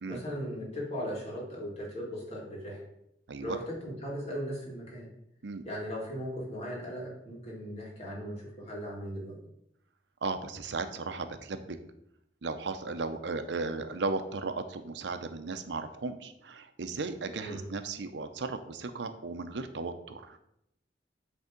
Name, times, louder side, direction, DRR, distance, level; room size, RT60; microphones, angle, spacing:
voice 1, 0.1-2.8 3.4-5.1 5.6-9.3 17.4-17.6, equal, 35° left, -3 dB, 2.2 m, -38 dB
voice 2, 10.2-11.8 12.4-20.4, right 3 dB, 75° right, 9 dB, 0.6 m, -36 dB
8.1 x 3.5 x 5.1 m, 0.79 s
head